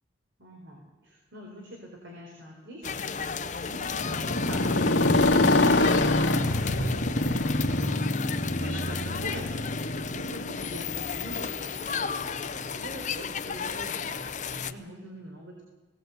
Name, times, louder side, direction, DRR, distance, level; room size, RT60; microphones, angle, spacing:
voice 1, 0.4-15.6, right 1 dB, 85° right, 0 dB, 4.1 m, -44 dB
sound 1, 2.8-14.7, left 6 dB, 40° left, 0.7 m, -34 dB
Motorcycle, 3.8-11.9, left 2 dB, 65° left, 1.6 m, -25 dB
18.5 x 17.5 x 8.1 m, 1.3 s
head